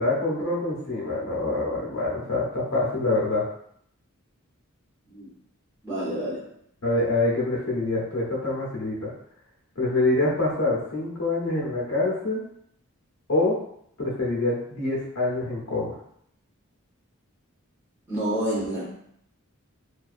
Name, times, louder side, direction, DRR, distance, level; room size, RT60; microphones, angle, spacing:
voice 1, 0.0-3.5 6.8-9.1 9.8-12.4 13.3-13.6 14.0-15.9, left 2 dB, 60° left, -4 dB, 0.6 m, -25 dB
voice 2, 5.8-6.4 18.1-18.9, right 1 dB, 10° right, -9 dB, 1.0 m, -28 dB
2.4 x 2.2 x 2.4 m, 0.72 s
head